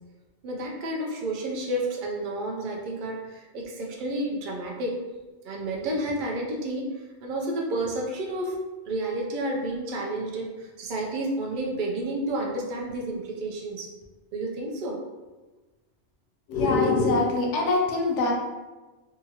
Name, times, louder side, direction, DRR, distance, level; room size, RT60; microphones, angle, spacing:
voice 1, 0.4-5.0 5.4-8.6 8.9-13.9 14.3-15.0, right 1 dB, 55° right, 0 dB, 0.6 m, -30 dB
voice 2, 16.5-18.3, left 3 dB, 85° left, 0 dB, 0.9 m, -23 dB
2.8 x 2.4 x 2.8 m, 1.2 s
omnidirectional pair, 1.2 m